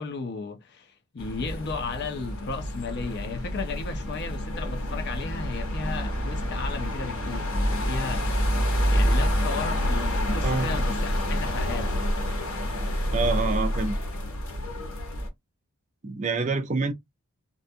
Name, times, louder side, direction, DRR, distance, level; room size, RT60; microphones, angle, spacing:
voice 1, 0.0-8.3 8.9-12.0, left 4 dB, 50° left, 0.5 m, -35 dB
sound 1, 1.2-15.3, equal, 70° left, 0.9 m, -27 dB
voice 2, 10.4-10.8 13.1-14.0 16.0-16.9, right 3 dB, 35° right, 0.4 m, -27 dB
2.4 x 2.2 x 2.6 m
head